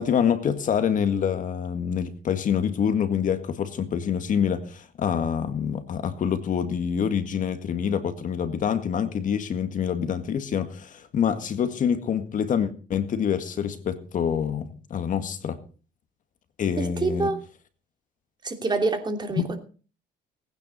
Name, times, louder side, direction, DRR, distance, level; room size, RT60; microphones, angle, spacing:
voice 1, 0.0-15.6 16.6-17.3 19.4-19.5, left 8 dB, 50° left, 1.8 m, -26 dB
voice 2, 16.8-17.4 18.4-19.6, right 3 dB, 25° right, 3.0 m, -26 dB
19.0 x 9.7 x 5.5 m
cardioid pair, 110°, 17 cm